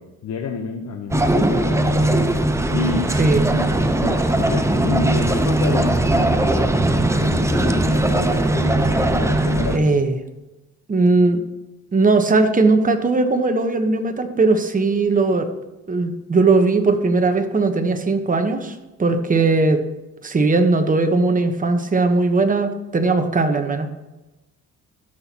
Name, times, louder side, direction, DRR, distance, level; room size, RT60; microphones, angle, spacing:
voice 1, 0.0-2.3 2.7-3.1 3.4-6.7 7.2-10.0 19.4-19.5, left 5 dB, 65° left, 4 dB, 0.9 m, -29 dB
sound 1, 1.1-9.8, right 1 dB, 10° right, 0.7 m, -19 dB
voice 2, 9.7-10.1 10.9-11.4 11.9-15.5 15.9-19.8 20.2-23.9, right 3 dB, 25° right, 7 dB, 1.1 m, -18 dB
13.0 x 6.1 x 2.9 m, 1.0 s
cardioid pair, 90°, 30 cm